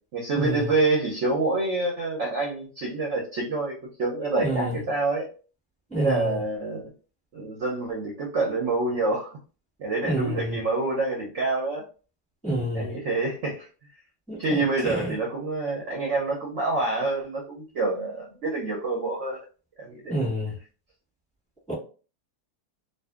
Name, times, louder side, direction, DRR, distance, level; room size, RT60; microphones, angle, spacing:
voice 1, 0.1-5.3 6.0-6.8 7.3-9.3 9.8-11.8 12.7-13.7 14.4-19.4 19.8-20.2, right 3 dB, 60° right, 0.8 m, -27 dB
voice 2, 5.9-6.3 10.0-10.6 12.4-12.9 14.3-15.1 20.1-20.5 21.7-21.8, right 1 dB, 5° left, 1.0 m, -28 dB
2.6 x 2.4 x 2.3 m
omnidirectional pair, 1.8 m